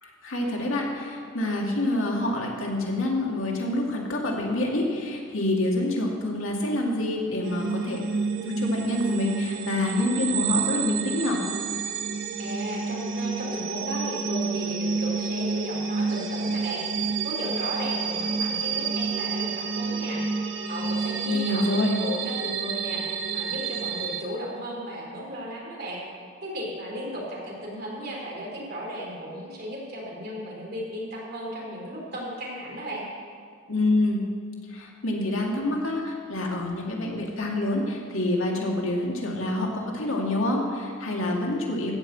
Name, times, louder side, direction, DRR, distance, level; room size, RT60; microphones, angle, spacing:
voice 1, 0.0-8.0 8.4-11.4 21.3-22.0 33.7-34.2 34.7-41.9, left 1 dB, 85° left, -1 dB, 2.2 m, -27 dB
sound 1, 7.4-24.2, right 5 dB, 70° right, 0.9 m, -29 dB
voice 2, 12.4-20.2 20.7-23.0 23.3-26.0 26.4-33.0, equal, 50° right, -3 dB, 3.5 m, -35 dB
15.0 x 5.6 x 8.0 m, 2.2 s
head